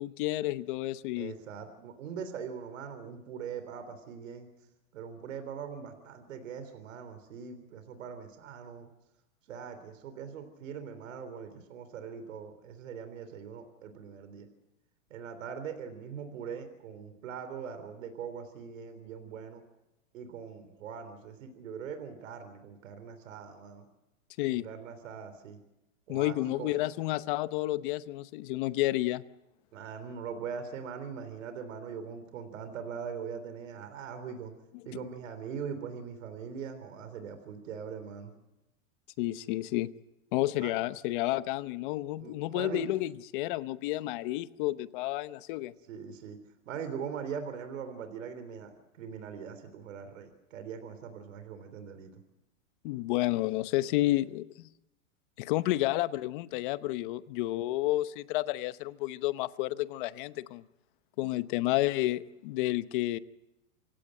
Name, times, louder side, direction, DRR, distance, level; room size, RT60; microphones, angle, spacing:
voice 1, 0.0-1.3 24.4-24.7 26.1-29.2 39.2-39.9 40.3-45.7 52.8-54.7 55.4-60.6 61.2-63.2, left 17 dB, 40° left, 15 dB, 0.9 m, -31 dB
voice 2, 1.2-4.5 4.9-8.9 9.5-14.5 15.1-19.6 20.1-23.9 24.5-25.6 26.1-26.7 29.7-34.5 34.8-38.3 40.6-40.7 42.2-42.9 45.9-46.4 46.7-52.2, right 6 dB, 75° right, 9 dB, 3.6 m, -41 dB
27.5 x 16.5 x 7.7 m, 0.95 s
supercardioid pair, 155°, 39 cm